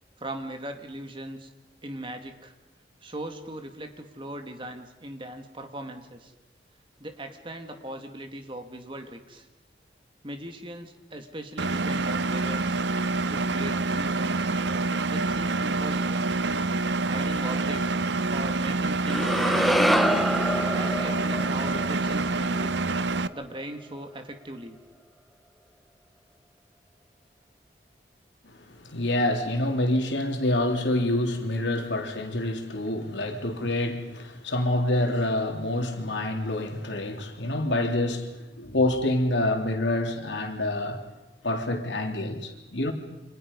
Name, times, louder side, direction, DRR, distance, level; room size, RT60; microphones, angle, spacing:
voice 1, 0.2-1.5 1.8-2.5 3.0-6.3 7.0-9.5 10.2-12.8 13.3-14.5 15.1-16.3 17.1-18.0 18.3-19.8 20.6-22.7 23.3-24.8, right 1 dB, 30° right, 2.3 m, -39 dB
Engine, 11.6-23.3, right 3 dB, 75° right, 0.8 m, -27 dB
sound 1, 19.1-23.3, equal, ahead, 0.8 m, -26 dB
voice 2, 28.7-41.0 41.4-42.9, left 1 dB, 85° left, 3.3 m, -27 dB
29.5 x 26.5 x 5.4 m
head